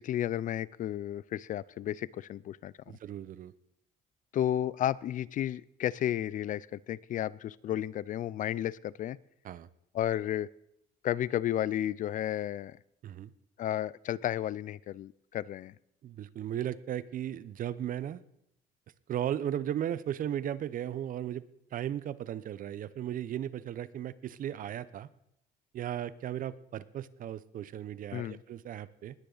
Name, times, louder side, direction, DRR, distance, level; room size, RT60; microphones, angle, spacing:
voice 1, 0.0-2.7 4.3-9.2 9.9-10.5 11.0-12.8 13.6-15.7 28.1-28.4, left 11 dB, 50° left, 22 dB, 0.4 m, -32 dB
voice 2, 2.9-3.5 9.4-9.7 13.0-13.3 16.0-18.2 19.1-21.4 21.7-25.1 25.7-29.1, right 10 dB, 55° right, 17 dB, 0.7 m, -36 dB
19.5 x 9.9 x 4.0 m, 0.79 s
cardioid pair, 110°, 17 cm